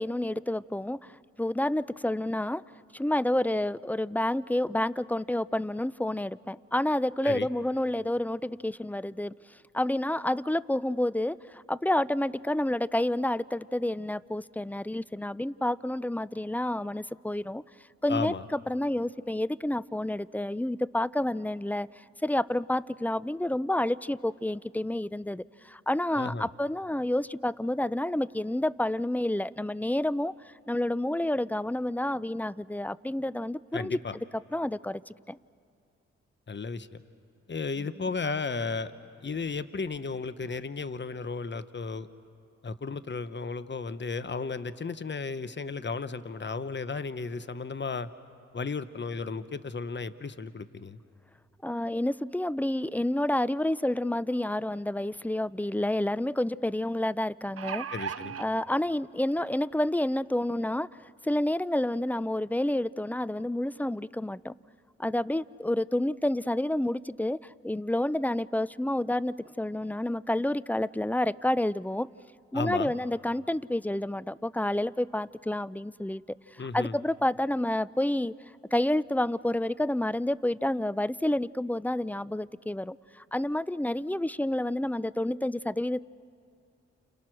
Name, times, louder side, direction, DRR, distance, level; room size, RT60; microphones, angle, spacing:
voice 1, 0.0-2.6 2.9-9.3 9.7-17.6 18.0-21.9 22.2-34.0 34.5-35.4 51.6-57.9 58.4-64.5 65.0-72.1 72.5-78.3 78.7-86.0, left 1 dB, 5° left, 19 dB, 0.5 m, -29 dB
voice 2, 18.1-18.4 26.1-26.5 33.7-34.1 36.5-37.0 37.5-38.9 39.2-42.1 42.6-48.1 48.5-51.0 57.9-58.4 72.5-72.9 76.6-76.9, left 4 dB, 40° left, 13 dB, 1.2 m, -34 dB
sound 1, 55.1-55.2 55.6-55.7 57.3-58.5 59.4-59.5 59.9-60.0, right 7 dB, 50° right, 0.7 m, -36 dB
29.5 x 28.5 x 6.3 m, 2.4 s
supercardioid pair, 45°, 29 cm